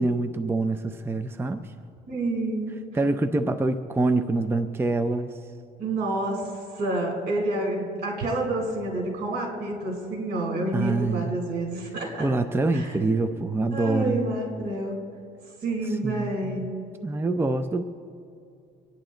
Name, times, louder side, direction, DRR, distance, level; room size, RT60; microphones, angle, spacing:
voice 1, 0.0-1.6 2.9-5.3 10.7-11.3 12.2-14.2 16.0-16.3 17.0-17.8, right 2 dB, 15° right, 8 dB, 0.6 m, -25 dB
voice 2, 2.1-3.0 5.8-12.3 12.7-13.0 13.7-15.0 15.6-16.6, right 2 dB, 70° right, 1 dB, 3.8 m, -29 dB
24.5 x 10.0 x 3.9 m, 2.5 s
cardioid pair, 110°, 17 cm